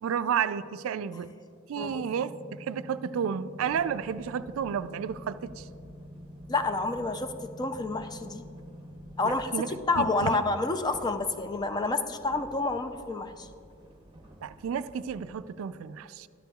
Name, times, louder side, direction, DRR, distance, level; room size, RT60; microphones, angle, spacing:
voice 1, 0.0-1.3 1.7-2.3 2.6-5.7 9.2-9.7 10.0-10.4 14.4-16.3, right 7 dB, 85° right, 14 dB, 0.3 m, -31 dB
sound 1, 1.8-9.7, equal, 45° left, 1.5 m, -47 dB
sound 2, 3.6-15.3, right 1 dB, 25° right, 0.7 m, -53 dB
voice 2, 6.5-7.3 7.6-8.5 9.2-13.5, left 3 dB, 20° left, 9 dB, 0.4 m, -29 dB
13.0 x 11.0 x 2.3 m, 2.4 s
head